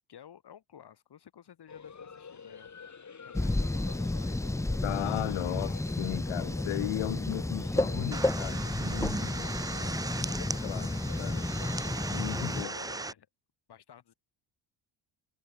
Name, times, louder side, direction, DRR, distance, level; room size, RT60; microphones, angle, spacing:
voice 1, 0.1-2.7 3.2-4.4 9.0-10.2 12.5-13.3 13.7-14.1, left 9 dB, 50° left, 4.9 m, -53 dB
sound 1, 1.7-13.0, left 6 dB, 35° left, 7.4 m, -49 dB
sound 2, 3.3-12.6, left 2 dB, 5° left, 0.7 m, -32 dB
voice 2, 4.8-9.5 10.4-11.6 12.1-12.7, left 19 dB, 75° left, 0.8 m, -36 dB
sound 3, 8.1-13.1, right 3 dB, 10° right, 0.3 m, -37 dB
cardioid pair, 100°, 49 cm